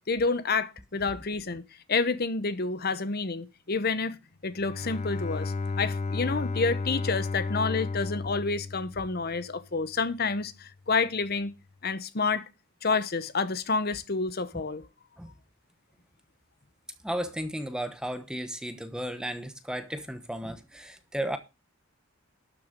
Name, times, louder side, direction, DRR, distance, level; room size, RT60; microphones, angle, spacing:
voice 1, 0.1-1.6 1.9-4.2 4.4-11.5 11.8-12.5 12.8-14.8, left 4 dB, 45° left, 0.9 m, -29 dB
Bowed string instrument, 4.5-9.5, left 3 dB, 30° left, 0.5 m, -33 dB
voice 2, 17.0-21.4, right 1 dB, 5° right, 1.0 m, -34 dB
12.5 x 7.0 x 5.1 m
head